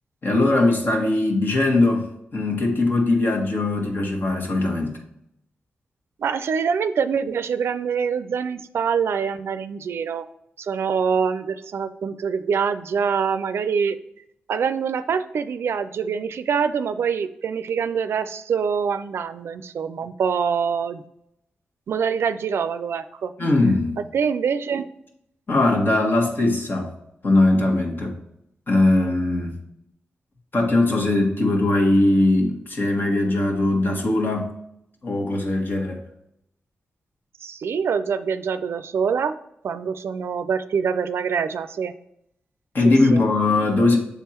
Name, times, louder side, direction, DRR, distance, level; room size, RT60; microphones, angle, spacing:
voice 1, 0.2-5.0 23.4-24.0 25.5-26.9 27.2-28.2 28.7-29.6 30.5-34.5 35.0-36.0 42.7-44.0, left 2 dB, 55° left, 1 dB, 1.5 m, -20 dB
voice 2, 6.2-10.3 10.6-14.0 14.5-21.0 21.9-23.3 24.1-24.9 37.4-39.3 39.6-41.9 42.8-43.2, right 6 dB, 75° right, 12 dB, 0.4 m, -25 dB
7.0 x 3.6 x 4.4 m, 0.77 s
cardioid pair, 60°, 4 cm